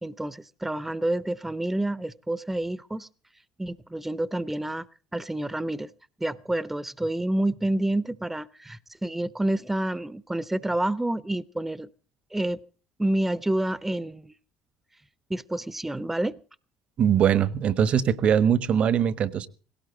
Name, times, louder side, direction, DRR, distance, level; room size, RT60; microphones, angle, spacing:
voice 1, 0.0-3.1 3.6-4.9 5.1-5.9 6.2-11.9 12.3-12.6 13.0-14.3 15.3-16.3, right 1 dB, 10° right, 17 dB, 0.8 m, -28 dB
voice 2, 17.0-19.5, right 8 dB, 50° right, 17 dB, 1.2 m, -22 dB
18.5 x 17.5 x 3.9 m, 0.40 s
hypercardioid pair, 60°, 3 cm